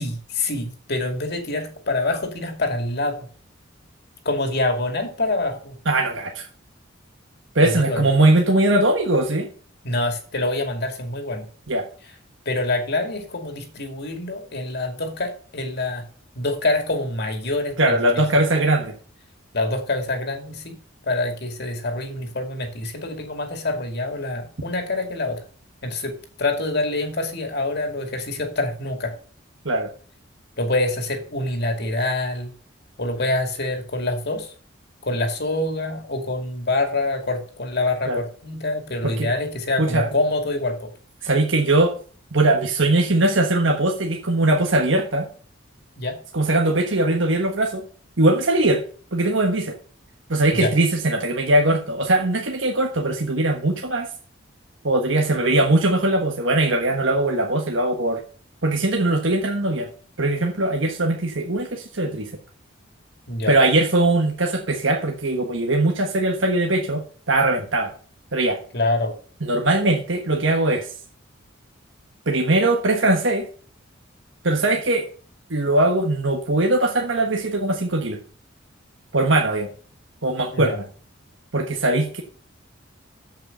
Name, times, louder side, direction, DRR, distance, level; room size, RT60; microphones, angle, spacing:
voice 1, 0.0-3.1 4.2-5.7 7.6-8.1 9.8-11.5 12.5-16.0 16.4-18.2 19.5-20.8 21.1-25.4 25.8-26.1 26.4-29.1 30.6-32.5 33.0-34.5 35.0-40.9 41.2-41.3 46.0-46.2 50.5-50.7 63.3-63.5 68.7-69.1 80.5-80.8, left 2 dB, 55° left, 5 dB, 2.4 m, -26 dB
voice 2, 5.8-6.5 7.5-9.5 11.7-11.9 17.8-18.9 29.6-29.9 38.1-38.2 39.0-39.3 39.8-40.1 41.2-41.9 42.3-45.3 46.3-47.8 48.2-48.8 49.1-49.8 50.3-54.1 54.8-58.2 58.6-59.9 60.2-62.3 63.5-67.9 68.3-68.6 69.4-70.9 72.3-73.5 74.4-75.1 75.5-78.2 79.1-79.7 80.2-80.8 81.5-82.2, right 2 dB, 70° right, 2 dB, 1.3 m, -20 dB
7.9 x 7.8 x 5.5 m, 0.42 s
head